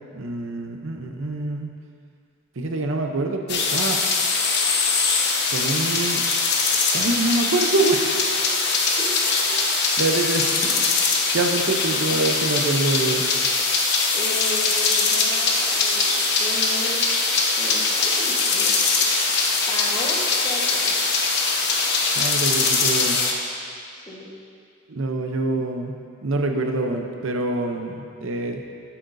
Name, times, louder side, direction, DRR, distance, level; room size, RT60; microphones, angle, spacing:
voice 1, 0.1-1.7 2.6-4.0 5.5-6.3 6.9-8.3 9.5-11.0 11.3-13.3 22.1-23.2 24.9-28.6, right 2 dB, 65° right, 3 dB, 0.7 m, -25 dB
sound 1, 3.5-23.3, left 4 dB, 55° left, 0.9 m, -22 dB
voice 2, 14.1-17.0 17.6-18.7 19.7-21.0 23.9-24.3, left 1 dB, 20° left, -4 dB, 1.3 m, -34 dB
12.0 x 8.5 x 2.6 m, 2.3 s
head